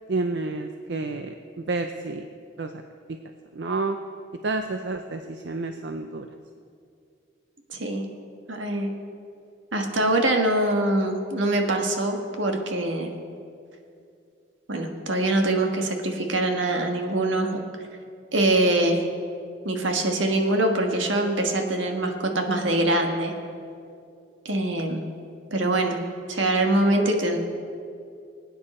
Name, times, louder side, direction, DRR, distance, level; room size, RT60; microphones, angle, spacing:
voice 1, 0.1-2.3 2.6-2.7 3.1-3.2 3.5-4.0 4.4-6.3, right 3 dB, 65° right, 6 dB, 0.6 m, -29 dB
voice 2, 7.7-8.0 8.5-8.9 9.7-13.1 14.7-17.6 18.3-19.0 19.6-23.3 24.4-25.0 25.5-26.0 26.3-27.4, right 1 dB, 85° right, 3 dB, 1.6 m, -23 dB
23.0 x 9.3 x 4.3 m, 2.4 s
head